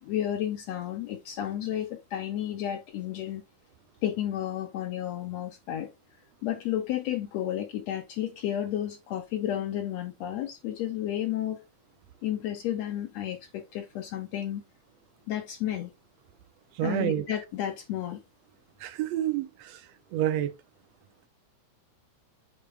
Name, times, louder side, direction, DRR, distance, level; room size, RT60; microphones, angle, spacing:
voice 1, 0.0-3.4 4.0-11.6 12.2-14.6 15.3-15.9 16.8-18.2, left 11 dB, 70° left, 1.9 m, -32 dB
voice 2, 16.7-17.3 18.8-19.8 20.1-20.5, right 12 dB, 75° right, 1.6 m, -28 dB
8.5 x 4.4 x 3.4 m
omnidirectional pair, 3.4 m